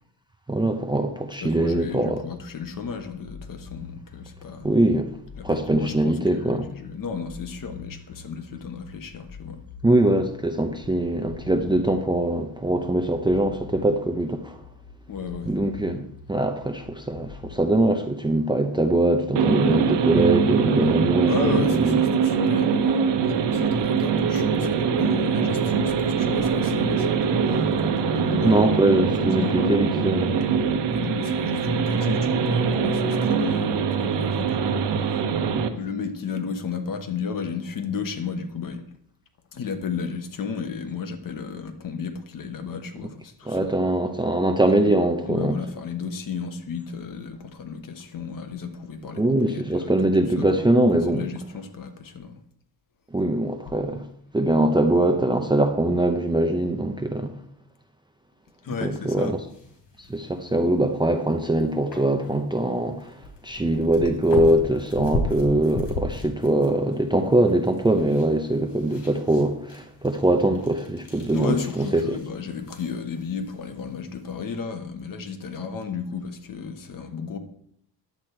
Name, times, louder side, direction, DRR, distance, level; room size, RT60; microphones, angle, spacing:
voice 1, 0.5-2.2 4.6-5.1 5.4-6.7 9.8-14.6 15.5-16.0 16.3-22.0 28.4-30.4 43.5-45.6 49.2-51.2 53.1-54.0 54.3-57.3 58.8-59.4 60.1-63.1 63.4-72.2, right 1 dB, 10° right, 0.6 m, -22 dB
voice 2, 1.4-4.7 5.4-9.6 15.1-15.5 21.3-28.7 29.3-29.6 30.9-34.8 35.7-38.8 39.5-43.8 44.8-44.9 45.3-49.9 50.4-50.6 51.1-52.4 58.6-59.3 71.3-77.4, left 6 dB, 50° left, 1.2 m, -33 dB
sound 1, 1.6-17.6, left 7 dB, 25° left, 1.1 m, -44 dB
sound 2, 19.4-35.7, right 6 dB, 80° right, 1.1 m, -23 dB
sound 3, 59.2-74.5, left 1 dB, 70° left, 3.5 m, -37 dB
10.5 x 8.2 x 4.5 m
cardioid pair, 155°, 42 cm